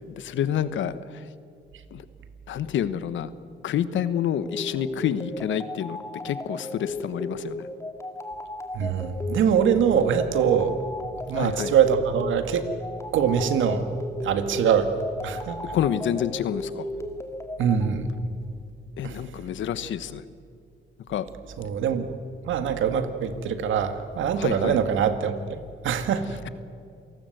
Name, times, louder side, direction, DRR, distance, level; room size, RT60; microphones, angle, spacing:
voice 1, 0.1-1.3 1.9-2.0 2.5-3.3 3.6-6.0 6.2-7.7 11.3-11.7 15.7-16.9 19.0-20.2 21.1-21.3 24.3-24.8, left 9 dB, 75° left, 14 dB, 1.2 m, -28 dB
sound 1, 4.4-17.9, left 1 dB, 15° left, 2.1 m, -35 dB
voice 2, 8.7-10.8 11.3-12.7 13.1-13.9 14.2-14.9 15.2-15.6 17.6-18.1 19.0-19.2 21.6-22.1 22.5-26.4, right 7 dB, 75° right, 9 dB, 2.0 m, -23 dB
27.5 x 19.0 x 8.0 m, 2.4 s
cardioid pair, 90°, 20 cm